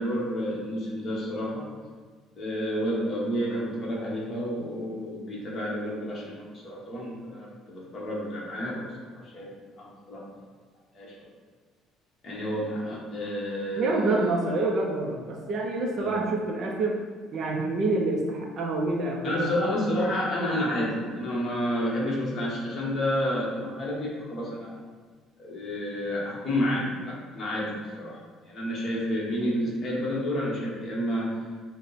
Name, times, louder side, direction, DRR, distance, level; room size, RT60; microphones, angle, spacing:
voice 1, 0.0-1.6 2.4-8.9 9.1-9.5 9.8-10.2 10.9-11.3 12.2-14.3 16.0-16.2 19.2-24.8 25.4-28.2 28.4-31.3, equal, 30° left, -5 dB, 1.1 m, -30 dB
voice 2, 13.8-17.0 17.3-19.5, right 2 dB, 40° right, 0 dB, 0.4 m, -27 dB
6.1 x 2.1 x 4.1 m, 1.5 s
cardioid pair, 175°, 0 cm